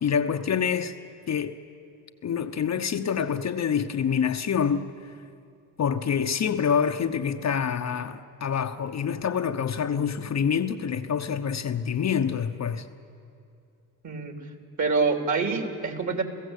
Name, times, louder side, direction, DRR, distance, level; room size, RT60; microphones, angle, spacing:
voice 1, 0.0-1.0 1.3-1.6 2.2-4.9 5.8-12.9, left 7 dB, 40° left, 0.9 m, -26 dB
voice 2, 14.0-14.4 14.8-16.2, right 4 dB, 45° right, 3.5 m, -26 dB
29.0 x 16.0 x 8.3 m
supercardioid pair, 75°, 42 cm